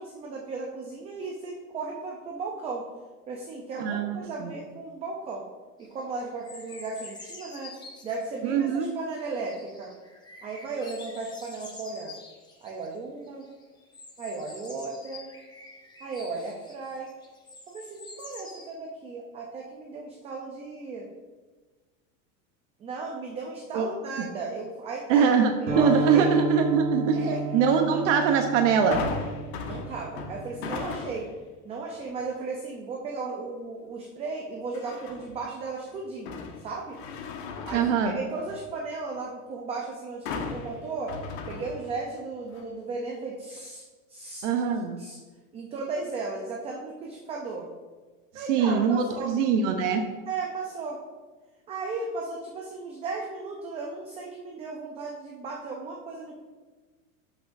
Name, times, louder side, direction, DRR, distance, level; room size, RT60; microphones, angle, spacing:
voice 1, 0.0-2.9 3.3-5.4 5.8-7.7 8.0-9.9 10.4-12.1 12.6-13.4 14.2-15.3 16.0-17.1 17.7-21.1 22.8-25.3 25.6-26.3 27.1-27.4 27.9-28.1 29.6-31.3 31.6-37.0 37.6-41.1 41.5-43.8 44.1-44.5 45.0-45.2 45.5-47.7 48.3-49.4 50.3-51.0 51.7-56.4, right 3 dB, 15° right, -1 dB, 0.5 m, -35 dB
voice 2, 3.8-4.5 8.4-8.9 23.7-23.9 25.1-25.5 25.7-27.2 27.5-29.0 37.7-38.1 44.4-45.0 48.5-50.0, right 6 dB, 65° right, 4 dB, 0.9 m, -23 dB
sound 1, 5.8-6.0 6.4-8.4 8.9-9.0 9.2-13.0 13.3-18.8, left 3 dB, 10° left, 0.9 m, -47 dB
sound 2, 25.7-30.9, right 3 dB, 40° right, 1.6 m, -31 dB
sound 3, 28.9-31.4 31.9-32.3 34.7-35.4 35.9-38.7 40.3-42.2 42.5-42.6, left 4 dB, 55° left, 1.1 m, -37 dB
12.0 x 6.2 x 2.6 m, 1.3 s
supercardioid pair, 160°, 40 cm